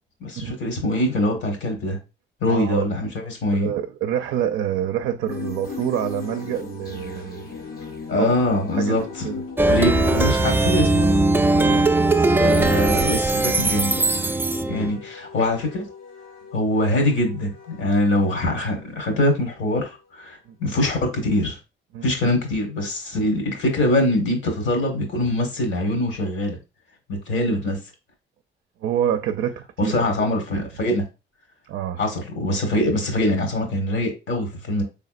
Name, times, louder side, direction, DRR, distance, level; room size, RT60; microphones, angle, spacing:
voice 1, 0.2-2.0 2.4-3.7 8.1-9.3 9.7-11.3 12.4-13.9 14.7-15.9 16.5-21.6 22.0-26.6 27.3-27.8 29.8-31.0 32.0-34.8, left 1 dB, 70° left, 1.5 m, -23 dB
voice 2, 2.5-2.9 3.5-7.5 8.1-8.3 8.7-9.4 11.5-11.9 13.6-13.8 20.5-20.6 21.9-22.1 28.8-30.3 30.5-30.7 31.7-32.0, right 10 dB, 80° right, 0.4 m, -27 dB
sound 1, 5.3-10.3, left 5 dB, 50° left, 0.7 m, -35 dB
Wind instrument woodwind instrument, 5.7-20.4, left 6 dB, 85° left, 1.2 m, -45 dB
Plucked string instrument, 9.6-14.9, right 2 dB, 10° right, 0.3 m, -19 dB
4.0 x 3.4 x 2.4 m
cardioid pair, 90°, 20 cm